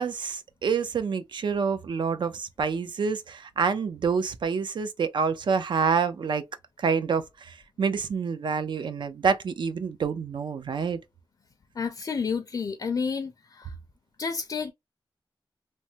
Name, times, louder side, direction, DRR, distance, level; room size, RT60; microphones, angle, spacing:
voice 1, 0.0-6.4 6.8-11.0, right 5 dB, 70° right, 0.4 m, -27 dB
voice 2, 11.8-13.7 14.2-14.7, left 5 dB, 45° left, 0.4 m, -30 dB
3.2 x 2.0 x 2.7 m
wide cardioid pair, 155°, 8 cm